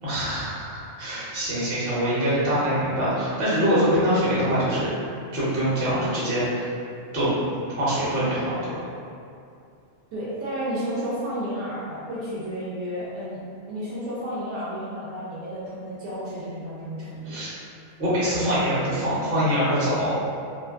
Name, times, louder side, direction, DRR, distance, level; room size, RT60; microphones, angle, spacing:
voice 1, 0.0-4.9 5.3-6.7 7.1-7.3 7.8-8.8 17.3-17.5 18.0-20.2, equal, 50° right, -9 dB, 1.0 m, -24 dB
voice 2, 10.1-17.4, equal, 70° right, -10 dB, 1.0 m, -32 dB
2.5 x 2.4 x 2.3 m, 2.5 s
omnidirectional pair, 1.4 m